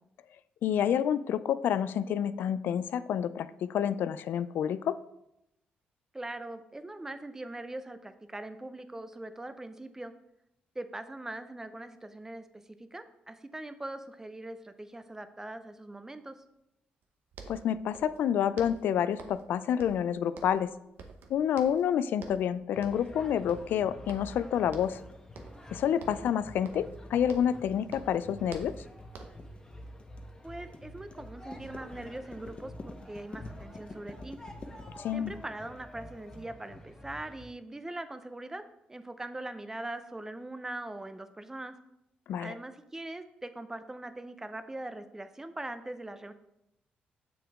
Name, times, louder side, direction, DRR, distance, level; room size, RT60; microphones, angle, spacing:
voice 1, 0.6-5.0 17.5-20.7 21.3-25.0 25.7-28.7 35.0-35.3 42.3-42.5, left 9 dB, 75° left, 15 dB, 0.3 m, -28 dB
voice 2, 6.1-10.1 10.7-12.5 12.9-16.3 30.4-34.4 35.1-38.6 38.9-41.7 42.4-46.3, right 2 dB, 15° right, 10 dB, 0.6 m, -41 dB
sound 1, 17.0-17.1 17.3-18.3 18.6-19.5 19.8-20.7 21.0-21.9 22.2-22.5 22.8-23.2 23.5-24.4 24.7-25.0 25.3-25.7 26.0-27.6 27.9-29.5, right 4 dB, 80° right, 0.9 m, -49 dB
sound 2, 22.7-37.5, equal, 15° left, 1.1 m, -48 dB
sound 3, 24.8-36.4, left 3 dB, 35° left, 0.9 m, -49 dB
7.2 x 5.9 x 3.5 m, 0.85 s
cardioid pair, 95°, 3 cm